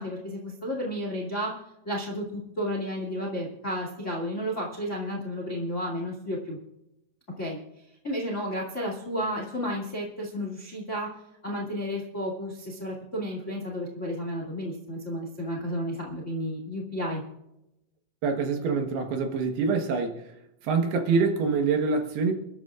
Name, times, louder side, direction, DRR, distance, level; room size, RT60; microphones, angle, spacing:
voice 1, 0.0-1.5 1.8-6.6 7.4-7.6 8.0-11.1 11.4-17.2, equal, 35° left, 1.2 m, -32 dB
voice 2, 18.2-20.2 20.6-22.3, right 4 dB, 65° right, 2.8 m, -25 dB
30.0 x 12.0 x 2.5 m
omnidirectional pair, 5.7 m